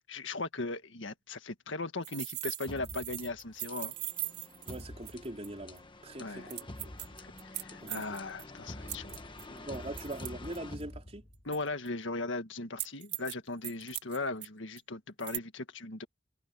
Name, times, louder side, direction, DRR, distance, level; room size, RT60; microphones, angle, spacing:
voice 1, 0.1-3.9 6.2-6.5 7.2-9.2 11.4-16.1, left 2 dB, 75° left, 1.7 m, -38 dB
sound 1, 2.0-5.5 5.8-5.9 6.5-8.4 8.9-10.8 11.5-11.9 12.8-13.3 13.6-14.5 14.8-14.9 15.2-15.4, right 15 dB, 55° right, 2.0 m, -40 dB
sound 2, 2.7-11.6, left 1 dB, 25° left, 1.4 m, -47 dB
voice 2, 4.7-6.9 7.7-8.2 9.5-11.3, right 1 dB, 30° right, 4.2 m, -42 dB
head